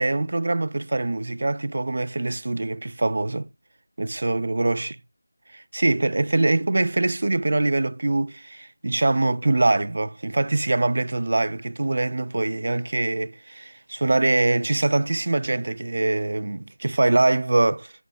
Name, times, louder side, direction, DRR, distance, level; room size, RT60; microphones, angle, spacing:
voice 1, 0.0-3.5 4.0-5.0 5.5-17.9, right 2 dB, 50° right, 0.4 m, -23 dB
9.3 x 6.1 x 2.2 m
figure-of-eight pair, 170°, 0 cm